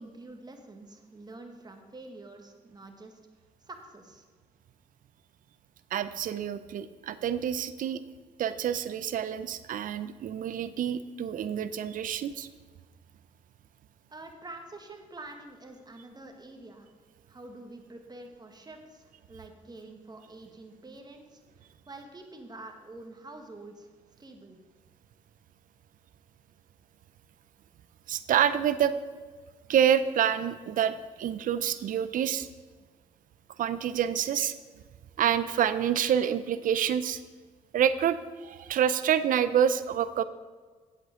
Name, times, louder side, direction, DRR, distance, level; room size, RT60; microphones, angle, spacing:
voice 1, 0.0-3.2 3.6-4.2 14.1-16.9 17.3-23.9 24.2-24.6, right 2 dB, 25° right, 4 dB, 1.7 m, -47 dB
voice 2, 5.9-8.0 8.4-12.5 28.1-28.9 29.7-32.5 33.6-34.5 35.2-37.2 37.7-40.2, right 9 dB, 65° right, 14 dB, 0.6 m, -27 dB
8.3 x 7.9 x 5.0 m, 1.4 s
supercardioid pair, 55°, 15 cm